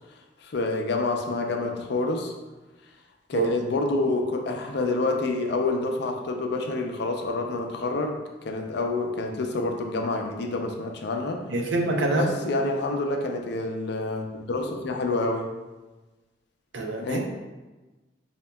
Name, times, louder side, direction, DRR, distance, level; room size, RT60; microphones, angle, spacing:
voice 1, 0.4-2.3 3.3-11.4 12.1-15.5 17.0-17.3, left 2 dB, 65° left, 3 dB, 0.5 m, -28 dB
voice 2, 11.5-12.3 16.7-17.3, right 2 dB, 75° right, 2 dB, 0.5 m, -25 dB
5.2 x 2.7 x 2.2 m, 1.2 s
head